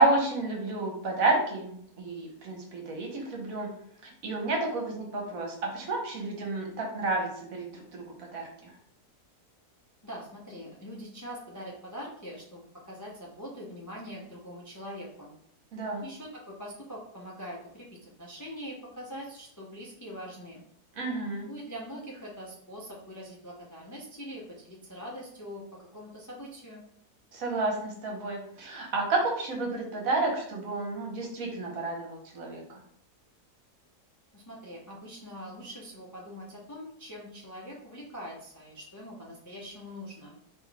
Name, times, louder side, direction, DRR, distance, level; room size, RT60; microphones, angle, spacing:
voice 1, 0.0-3.7 4.0-8.7 15.7-16.0 20.9-21.5 27.3-32.8, right 2 dB, 60° right, 0 dB, 1.3 m, -30 dB
voice 2, 10.0-15.3 16.0-20.6 21.4-25.6 25.9-26.8 34.3-40.4, equal, 25° left, -4 dB, 0.4 m, -43 dB
3.8 x 3.0 x 3.5 m, 0.66 s
omnidirectional pair, 1.7 m